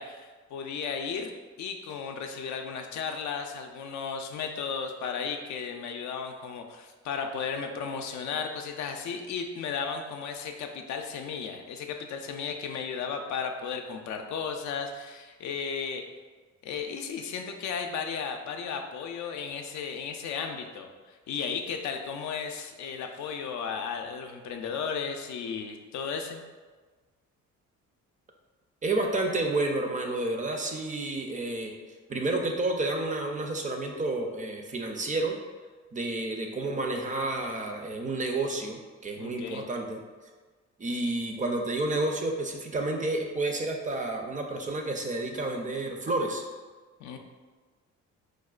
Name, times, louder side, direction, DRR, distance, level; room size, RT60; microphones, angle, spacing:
voice 1, 0.0-16.1 16.6-26.4 39.2-39.7 47.0-47.2, left 6 dB, 70° left, 4 dB, 0.4 m, -35 dB
voice 2, 28.8-31.8 32.1-35.4 35.9-40.0 40.8-46.4, right 2 dB, 25° right, 2 dB, 0.4 m, -30 dB
4.6 x 2.1 x 2.3 m, 1.4 s
cardioid pair, 90°, 30 cm